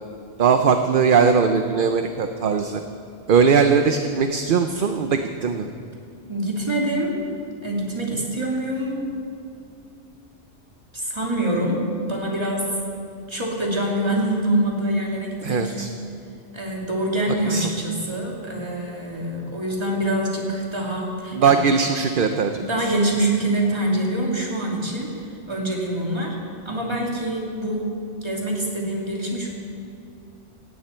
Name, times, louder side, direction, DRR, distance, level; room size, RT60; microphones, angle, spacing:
voice 1, 0.4-2.8 3.3-5.7 15.4-15.9 17.5-17.7 21.3-22.9, right 6 dB, 55° right, 7 dB, 0.8 m, -20 dB
voice 2, 6.3-7.2 7.6-9.1 10.9-12.7 13.3-15.8 16.5-21.6 22.5-26.4 26.6-28.0 28.2-29.5, right 1 dB, 25° right, -2 dB, 2.7 m, -25 dB
17.0 x 17.0 x 4.4 m, 2.4 s
omnidirectional pair, 1.2 m